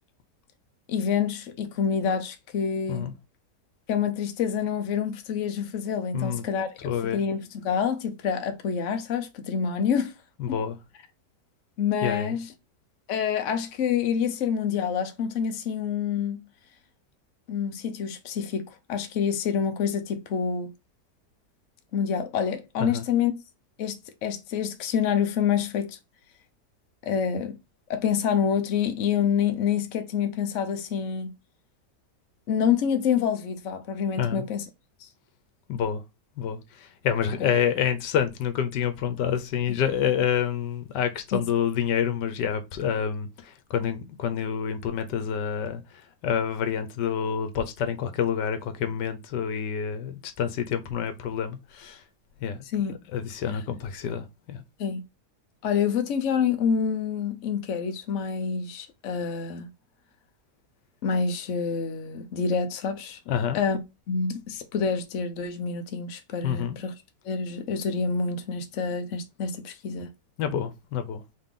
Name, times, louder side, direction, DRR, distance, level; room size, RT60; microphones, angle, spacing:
voice 1, 0.9-3.1 3.9-10.1 10.5-10.6 11.8-12.5 13.1-16.4 17.5-20.7 21.9-23.3 23.8-26.0 27.0-27.6 27.9-31.3 32.5-34.7 41.3-41.4 52.7-53.0 54.8-55.0 55.6-59.7 61.0-63.2 63.5-63.8 64.1-66.9 67.2-70.1, left 7 dB, 55° left, 1.0 m, -27 dB
voice 2, 6.1-6.4 6.8-7.2 10.4-10.8 12.0-12.4 22.8-23.0 34.2-34.5 35.7-36.0 36.4-52.0 52.4-52.6 53.1-54.6 63.3-63.6 66.4-66.8 70.4-71.2, left 8 dB, 85° left, 1.4 m, -28 dB
4.2 x 3.3 x 3.7 m
omnidirectional pair, 1.8 m